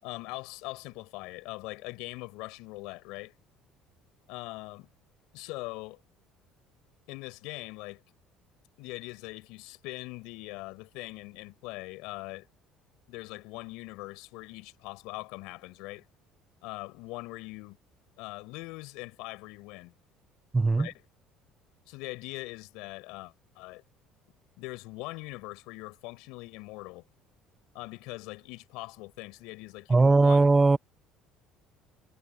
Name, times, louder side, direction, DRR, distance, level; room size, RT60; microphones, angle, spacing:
voice 1, 0.0-3.3 4.3-4.9 5.3-6.0 7.1-8.0 8.8-12.5 13.1-16.0 16.6-17.8 18.2-19.9 20.8-20.9 21.9-23.8 24.6-27.0 27.7-30.4, left 23 dB, 85° left, 7.0 m, -41 dB
voice 2, 20.5-20.9 29.9-30.8, right 3 dB, 15° right, 0.9 m, -20 dB
cardioid pair, 125°, 0 cm